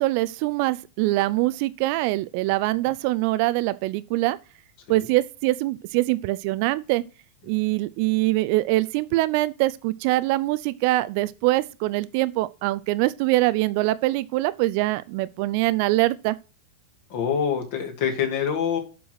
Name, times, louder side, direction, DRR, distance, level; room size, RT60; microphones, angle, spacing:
voice 1, 0.0-4.4 4.9-7.0 7.5-16.4, right 18 dB, 45° right, 0.4 m, -23 dB
voice 2, 17.1-18.8, left 7 dB, 50° left, 2.7 m, -25 dB
7.6 x 6.2 x 6.3 m
figure-of-eight pair, 90°, 0 cm